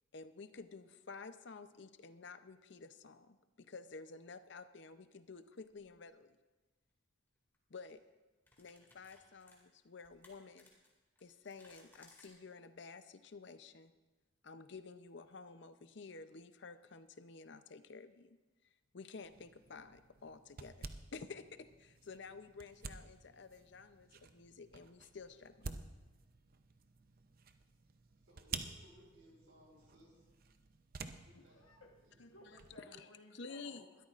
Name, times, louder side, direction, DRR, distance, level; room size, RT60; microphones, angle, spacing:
voice 1, 0.1-6.4 7.7-8.0 8.6-10.7 11.2-13.9 14.4-18.4 18.9-25.7 32.8-33.9, left 4 dB, 55° left, 11 dB, 0.6 m, -52 dB
sound 1, 5.7-5.9 7.4-7.6 7.9-8.0 8.5-12.3, left 2 dB, 10° left, 2.2 m, -65 dB
sound 2, 19.2-32.8, right 5 dB, 45° right, 0.6 m, -51 dB
voice 2, 28.2-30.3 31.1-31.6 32.0-32.3, equal, 75° right, -1 dB, 4.6 m, -64 dB
voice 3, 31.3-31.9 32.2-34.1, left 1 dB, 80° left, 1 dB, 1.3 m, -59 dB
21.0 x 13.0 x 2.5 m, 1.2 s
head